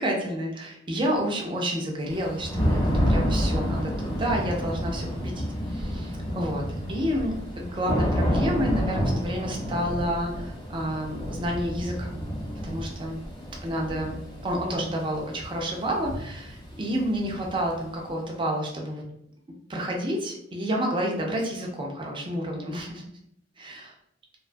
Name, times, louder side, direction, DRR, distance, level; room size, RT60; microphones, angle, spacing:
voice 1, 0.0-6.6 6.9-12.2 12.6-13.2 13.6-14.1 14.4-19.0 19.7-23.0 23.6-23.9, equal, 25° right, -1 dB, 0.5 m, -29 dB
Thunder / Rain, 2.1-17.9, equal, 25° left, 0.9 m, -29 dB
2.5 x 2.2 x 2.5 m, 0.74 s
head